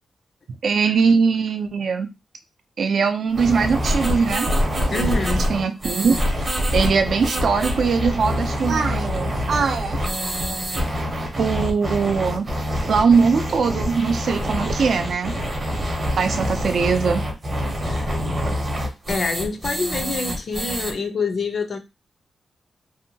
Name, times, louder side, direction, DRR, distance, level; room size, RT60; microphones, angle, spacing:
voice 1, 0.6-2.1 2.8-4.5 4.9-6.2 6.7-10.0 11.4-12.5 12.9-15.3 16.2-17.2, right 5 dB, 60° right, 0.4 m, -21 dB
sound 1, 3.3-20.9, equal, 30° right, 0.8 m, -25 dB
voice 2, 4.9-5.5 17.8-18.1 19.1-21.8, left 4 dB, 50° left, 0.5 m, -26 dB
2.7 x 2.2 x 2.7 m
wide cardioid pair, 140°, 0 cm